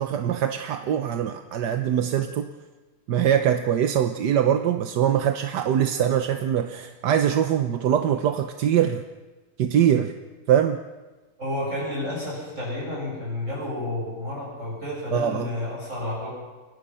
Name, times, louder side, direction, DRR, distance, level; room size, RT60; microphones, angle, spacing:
voice 1, 0.0-2.5 3.1-9.0 9.6-10.1 10.5-10.8 15.1-15.5, right 9 dB, 60° right, 7 dB, 1.4 m, -23 dB
voice 2, 11.4-16.3, left 1 dB, 35° right, -5 dB, 8.0 m, -31 dB
30.0 x 22.5 x 5.6 m, 1.2 s
omnidirectional pair, 2.3 m